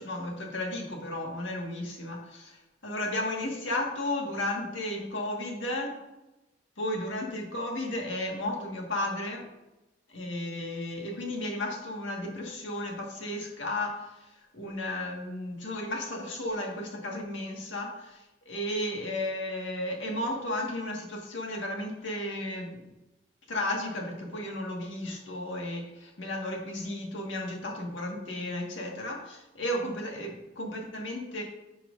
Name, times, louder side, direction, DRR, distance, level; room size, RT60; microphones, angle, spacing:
voice 1, 0.0-6.0 6.8-9.5 10.1-14.1 14.5-22.8 23.5-31.4, left 1 dB, 90° left, 0 dB, 1.7 m, -34 dB
10.0 x 6.0 x 2.6 m, 1.0 s
head